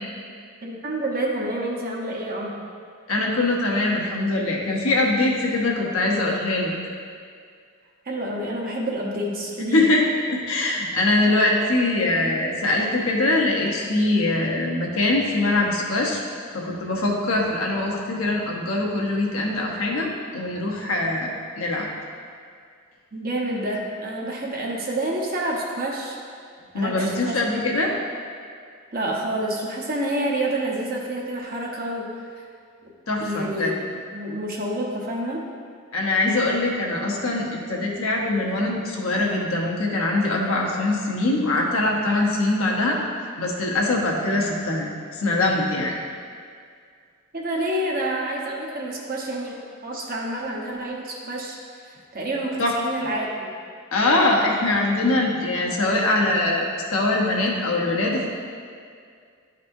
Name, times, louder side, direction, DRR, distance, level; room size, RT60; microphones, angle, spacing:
voice 1, 0.6-2.5 8.0-9.9 23.1-26.2 26.7-27.4 28.9-32.4 33.2-35.4 47.3-53.5, right 1 dB, 45° right, -2 dB, 0.9 m, -28 dB
voice 2, 3.1-6.7 9.7-10.0 10.3-16.2 16.5-21.9 26.7-27.9 33.1-33.7 35.9-43.0 43.4-46.0 52.6-52.7 53.9-58.3, left 2 dB, 75° left, -2 dB, 1.0 m, -23 dB
11.0 x 4.1 x 2.6 m, 2.2 s
head